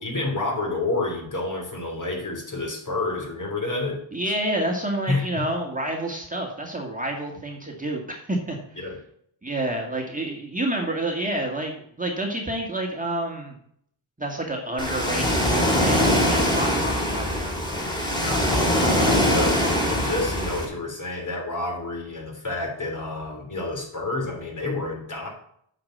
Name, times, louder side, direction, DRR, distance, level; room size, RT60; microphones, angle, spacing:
voice 1, 0.0-4.0 5.1-5.4 8.7-9.0 18.2-25.3, left 2 dB, 35° left, 0 dB, 3.5 m, -29 dB
voice 2, 4.1-8.9 9.4-13.6 14.2-17.6, right 1 dB, 15° right, 0 dB, 2.0 m, -29 dB
Ocean, 14.8-20.7, left 1 dB, 10° left, 3.2 m, -22 dB
8.7 x 5.3 x 7.7 m, 0.67 s
cardioid pair, 90°, 50 cm